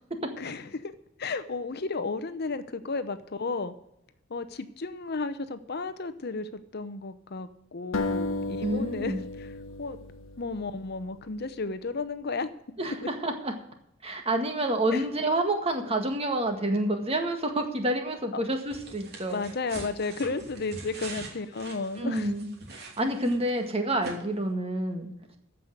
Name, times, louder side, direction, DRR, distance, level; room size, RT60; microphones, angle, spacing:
voice 1, 0.4-0.9 1.2-3.7 4.3-9.5 9.8-10.0 10.4-12.5 13.0-13.1 14.9-15.0 18.3-18.4 19.3-22.3, left 3 dB, 55° left, 12 dB, 0.8 m, -33 dB
sound 1, 7.9-11.2, left 2 dB, 85° left, 1.1 m, -34 dB
voice 2, 8.6-9.2 12.8-13.5 14.0-19.4 22.0-25.1, right 1 dB, 30° right, 4 dB, 1.9 m, -28 dB
sound 2, 18.7-23.6 24.0-24.1, right 2 dB, 55° right, 2.9 m, -43 dB
14.5 x 5.6 x 7.8 m, 0.80 s
head